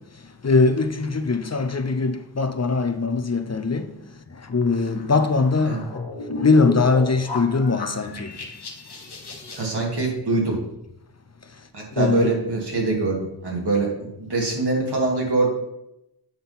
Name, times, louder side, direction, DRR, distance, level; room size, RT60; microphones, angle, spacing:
voice 1, 0.4-3.9 4.5-6.0 6.4-8.3 12.0-12.3, left 3 dB, 40° left, 0.7 m, -21 dB
sound 1, 4.5-9.7, left 3 dB, 70° left, 1.3 m, -33 dB
voice 2, 9.6-10.6 11.7-13.9 14.2-15.5, right 3 dB, 75° right, 2.4 m, -23 dB
8.7 x 3.9 x 5.6 m
wide cardioid pair, 50°, 41 cm